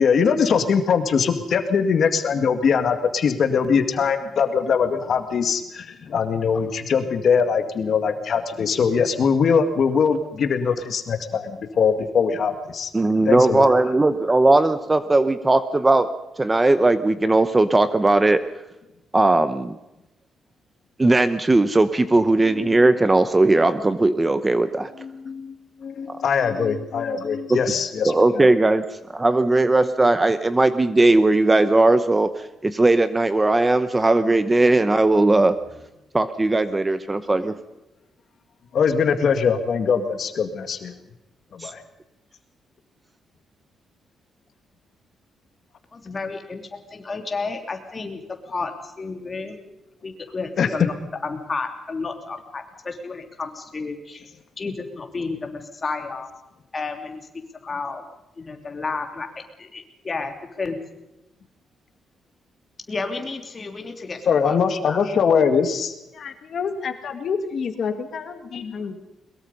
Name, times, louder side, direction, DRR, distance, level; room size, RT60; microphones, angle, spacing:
voice 1, 0.0-12.9 13.3-13.7 22.5-22.8 25.0-28.4 38.7-40.9 41.6-41.8 50.6-50.7 64.3-69.0, left 6 dB, 50° left, 7 dB, 1.9 m, -22 dB
voice 2, 12.9-16.1 16.4-18.4 19.1-19.8 21.0-24.9 26.1-26.2 27.5-27.6 28.0-28.8 29.1-32.3 32.6-35.6 36.1-37.6 41.6-41.7, right 2 dB, 15° right, 12 dB, 0.8 m, -18 dB
voice 3, 45.9-49.7 50.0-50.9 51.2-54.3 54.6-56.3 56.7-57.3 57.7-58.0 58.4-59.3 59.6-60.8 62.9-64.6 64.9-65.0, left 4 dB, 25° left, 4 dB, 3.1 m, -31 dB
22.0 x 22.0 x 5.4 m, 0.95 s
cardioid pair, 150°, 0 cm